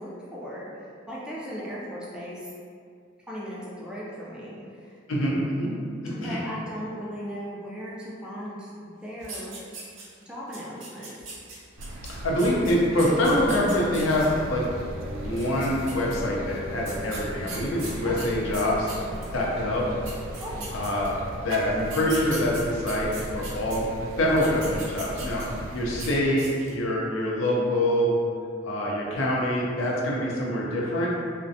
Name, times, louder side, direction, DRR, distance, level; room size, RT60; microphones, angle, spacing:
voice 1, 0.0-2.5 3.3-5.0 6.1-9.6 10.2-11.2 18.0-18.2 20.4-20.7, equal, 5° right, -7 dB, 0.3 m, -37 dB
voice 2, 5.1-5.8 6.0-6.4 12.1-14.7 15.0-19.0 19.3-20.0 20.7-23.9 24.2-28.2 28.6-31.1, left 1 dB, 80° left, -4 dB, 0.5 m, -25 dB
sound 1, 9.2-10.2 10.5-14.3 15.2-16.2 16.8-19.3 19.8-19.9 20.0-21.3 21.8-23.8 24.3-25.6 25.9-26.1 26.4-26.8, right 3 dB, 70° right, 0.7 m, -40 dB
sound 2, 11.8-26.2, right 1 dB, 85° right, 0.3 m, -38 dB
sound 3, 14.5-20.7, equal, 45° left, 0.9 m, -42 dB
2.5 x 2.1 x 2.6 m, 2.2 s
head